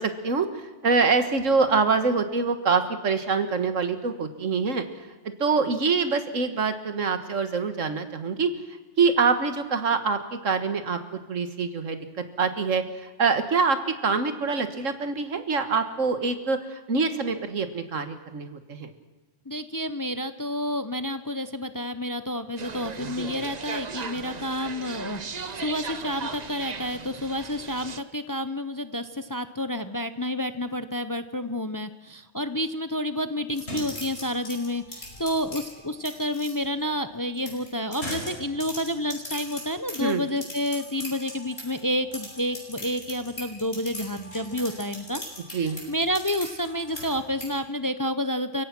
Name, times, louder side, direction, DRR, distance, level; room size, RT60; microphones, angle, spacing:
voice 1, 0.0-4.8 5.4-8.5 9.0-11.0 11.3-18.9 40.0-40.2 45.5-45.8, right 4 dB, 80° right, 9 dB, 1.9 m, -25 dB
voice 2, 19.5-45.2 45.5-48.6, left 1 dB, 20° left, 11 dB, 0.6 m, -30 dB
sound 1, 22.6-28.0, right 5 dB, 35° right, 1.0 m, -37 dB
sound 2, 33.5-36.5 37.3-41.8 42.1-47.5, equal, 55° left, 6.3 m, -39 dB
30.0 x 16.5 x 6.1 m, 1.2 s
omnidirectional pair, 1.3 m